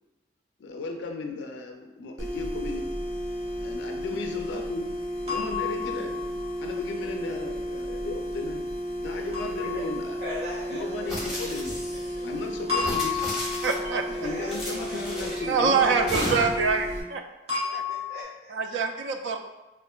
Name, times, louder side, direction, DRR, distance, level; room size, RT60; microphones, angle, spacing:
voice 1, 0.6-2.9 3.6-4.9 5.2-6.2 6.6-8.7 9.0-10.2 10.7-11.8 12.2-13.2 14.1-16.4, left 3 dB, 85° left, 3 dB, 0.3 m, -35 dB
sound 1, 2.2-17.0, equal, 20° right, 0.5 m, -33 dB
sound 2, 5.3-6.7 9.3-10.5 12.7-14.1 17.5-18.2, left 6 dB, 35° right, 0.9 m, -32 dB
voice 2, 10.2-11.3 14.1-15.6 15.9-16.6 17.8-18.5, left 1 dB, 65° right, -11 dB, 1.0 m, -39 dB
sound 3, 11.1-12.1 12.7-13.9 14.5-15.5 16.1-16.7, left 1 dB, 5° right, 0.8 m, -34 dB
voice 3, 13.6-14.0 15.5-17.2 17.7-17.8 18.5-19.4, right 5 dB, 85° right, 6 dB, 0.3 m, -25 dB
4.3 x 2.4 x 2.2 m, 1.1 s
head